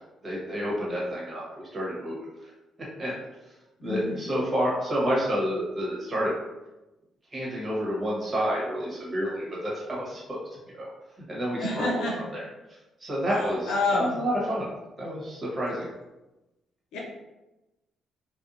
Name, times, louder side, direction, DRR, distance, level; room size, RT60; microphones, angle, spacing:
voice 1, 0.2-2.5 3.0-3.1 3.8-6.4 7.3-10.4 10.8-10.9 11.3-12.0 12.3-12.4 13.0-14.7 15.0-15.9, equal, 35° right, -5 dB, 1.3 m, -29 dB
voice 2, 3.8-4.2 11.6-12.2 13.7-14.2 16.9-17.0, left 2 dB, 80° left, -3 dB, 0.7 m, -27 dB
2.6 x 2.3 x 2.5 m, 1.0 s
supercardioid pair, 60°, 0 cm